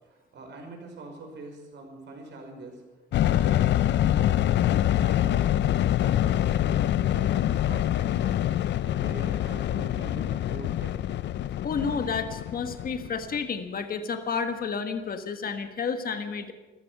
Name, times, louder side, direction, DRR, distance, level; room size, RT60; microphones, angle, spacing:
voice 1, 0.0-2.8 3.2-5.5 5.9-8.4 8.8-11.0, right 2 dB, 65° right, 2 dB, 5.1 m, -43 dB
sound 1, 3.1-13.3, left 12 dB, 65° left, 0.5 m, -25 dB
voice 2, 11.6-16.5, left 5 dB, 50° left, 7 dB, 1.6 m, -31 dB
14.5 x 13.0 x 6.8 m, 1.2 s
cardioid pair, 90°, 20 cm